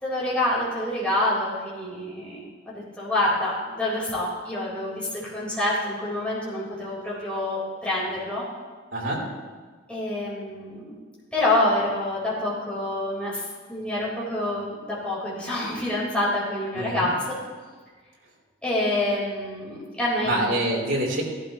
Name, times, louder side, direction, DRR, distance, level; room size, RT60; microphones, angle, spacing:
voice 1, 0.0-2.4 2.7-8.4 9.9-10.9 11.3-13.4 13.7-17.1 18.6-20.5, left 1 dB, 5° left, -8 dB, 3.9 m, -27 dB
voice 2, 8.9-9.2 16.7-17.1 20.2-21.2, right 1 dB, 80° right, -3 dB, 3.4 m, -25 dB
17.0 x 12.0 x 3.0 m, 1.4 s
head